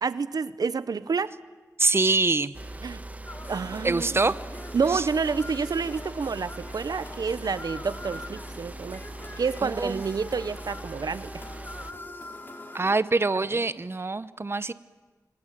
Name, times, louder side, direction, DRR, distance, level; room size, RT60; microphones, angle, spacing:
voice 1, 0.0-1.3 2.8-3.0 3.5-4.2 4.7-9.0 9.4-11.3, right 5 dB, 80° right, 15 dB, 0.8 m, -28 dB
voice 2, 1.8-2.5 3.8-4.4 4.9-5.1 9.6-10.0 12.7-14.7, right 3 dB, 40° right, 15 dB, 0.9 m, -24 dB
sound 1, 2.5-11.9, right 2 dB, 25° right, 1.3 m, -41 dB
sound 2, 3.3-13.0, left 2 dB, 35° left, 3.6 m, -43 dB
26.5 x 23.5 x 9.2 m, 1.3 s
wide cardioid pair, 65°, 6 cm